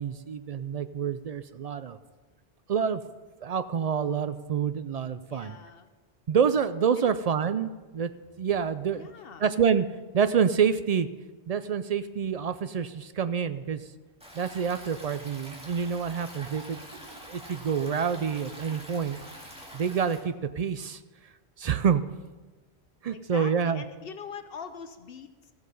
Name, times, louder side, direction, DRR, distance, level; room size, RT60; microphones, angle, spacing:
voice 1, 0.0-2.0 2.7-3.0 3.4-5.6 6.3-8.1 8.4-9.1 9.4-9.9 10.1-11.1 11.5-13.8 14.3-16.8 17.3-19.2 19.7-21.0 21.6-22.0 23.0-23.8, right 7 dB, 55° right, 12 dB, 0.4 m, -27 dB
voice 2, 5.3-5.9 7.0-7.1 8.9-9.4 23.1-25.5, left 6 dB, 65° left, 9 dB, 0.8 m, -43 dB
Stream, 14.2-20.2, equal, 5° right, 2.1 m, -45 dB
14.5 x 7.9 x 5.4 m, 1.2 s
omnidirectional pair, 1.1 m